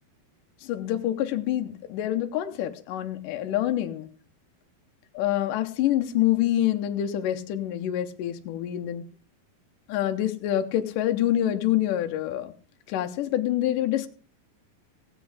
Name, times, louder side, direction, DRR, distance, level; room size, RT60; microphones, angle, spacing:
voice 1, 0.6-4.1 5.1-9.0 9.9-12.5 12.9-14.1, left 12 dB, 70° left, 6 dB, 2.3 m, -26 dB
17.5 x 7.6 x 4.8 m, 0.39 s
omnidirectional pair, 4.3 m